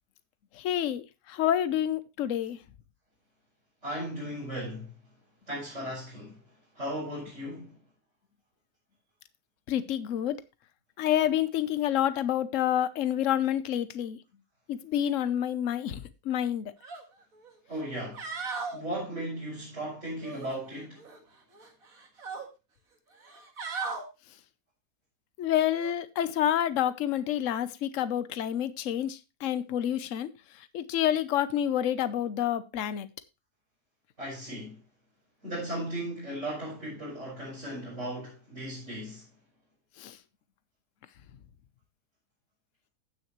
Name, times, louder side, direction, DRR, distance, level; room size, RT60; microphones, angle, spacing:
voice 1, 0.6-2.6 9.7-10.4 11.0-14.2 14.7-16.7 25.4-30.3 30.7-33.1 40.0-40.1, left 11 dB, 65° left, 1.1 m, -28 dB
voice 2, 3.8-4.9 5.5-6.4 6.7-7.8 17.7-18.3 18.7-21.1 34.2-34.8 35.4-39.3, right 1 dB, 55° right, 5.6 m, -36 dB
sound 1, 16.8-17.0 17.4-17.5 18.0-18.8 20.2-21.2 21.5-22.5 23.2-24.0 25.7-25.9, right 4 dB, 75° right, 2.3 m, -38 dB
16.0 x 6.2 x 3.0 m
omnidirectional pair, 1.5 m